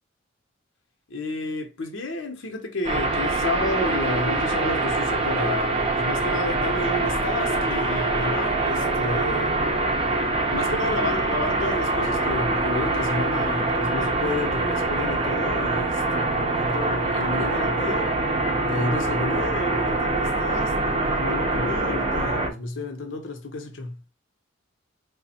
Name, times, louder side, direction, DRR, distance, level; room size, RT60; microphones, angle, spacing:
voice 1, 1.1-9.6 10.5-18.1 18.6-20.8 21.2-24.0, left 2 dB, 70° left, 0.8 m, -31 dB
sound 1, 2.8-22.5, right 2 dB, 30° right, 0.6 m, -24 dB
3.4 x 2.1 x 4.2 m
head